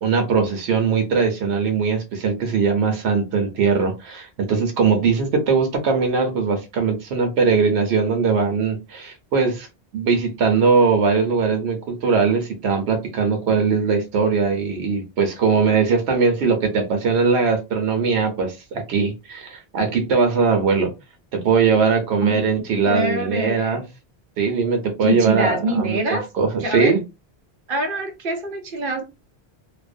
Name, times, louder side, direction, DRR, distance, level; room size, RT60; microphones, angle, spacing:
voice 1, 0.0-9.7 9.9-20.9 21.3-23.8 24.4-27.0, right 5 dB, 90° right, 0.9 m, -20 dB
voice 2, 22.8-23.8 25.0-26.3 26.6-26.9 27.7-29.0, right 2 dB, 60° right, 0.8 m, -24 dB
2.4 x 2.1 x 2.4 m
omnidirectional pair, 1.1 m